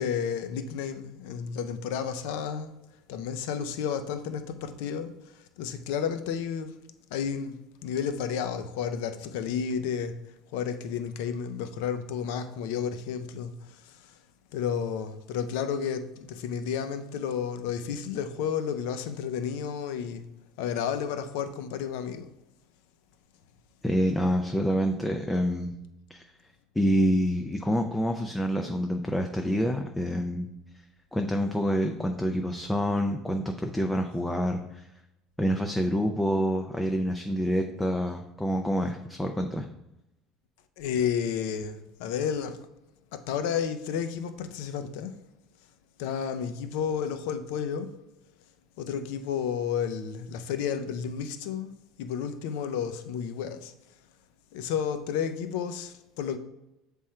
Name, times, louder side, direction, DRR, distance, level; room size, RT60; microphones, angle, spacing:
voice 1, 0.0-2.8 3.1-6.8 7.1-7.6 7.8-10.1 10.5-13.5 13.8-14.1 14.5-20.3 20.6-22.3 40.8-42.6 43.1-45.1 46.0-47.9 48.8-51.7 52.0-53.7 54.5-56.4, left 7 dB, 75° left, 0.6 m, -31 dB
voice 2, 23.8-25.8 26.1-26.2 26.8-30.5 31.1-34.9 35.4-39.7, equal, 5° left, 0.3 m, -27 dB
7.6 x 3.6 x 4.3 m
cardioid pair, 180°, 0 cm